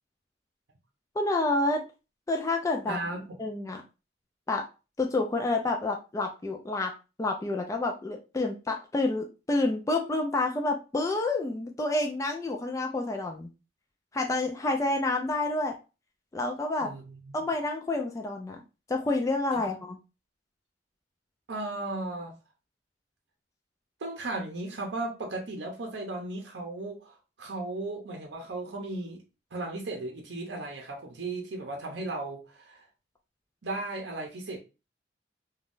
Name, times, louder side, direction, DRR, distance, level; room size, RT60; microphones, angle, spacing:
voice 1, 1.2-1.8 2.3-3.0 3.4-3.8 4.5-4.6 5.0-6.9 7.2-13.5 14.1-15.7 16.3-16.9 17.3-18.6 18.9-20.0, left 2 dB, 20° left, 2 dB, 0.3 m, -28 dB
voice 2, 2.9-3.4 16.8-17.3 19.5-19.6 21.5-22.4 24.0-29.2 29.5-32.8 33.6-34.6, right 2 dB, 70° right, 1 dB, 0.6 m, -36 dB
3.5 x 2.3 x 2.5 m, 0.30 s
head